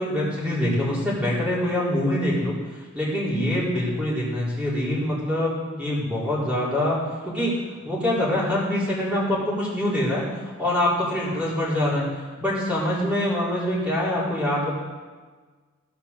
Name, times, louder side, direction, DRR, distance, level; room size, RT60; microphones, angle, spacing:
voice 1, 0.0-2.5 2.9-7.0 7.2-7.5 7.8-12.1 12.4-14.7, left 1 dB, 5° right, -7 dB, 4.0 m, -24 dB
16.5 x 5.8 x 6.8 m, 1.4 s
head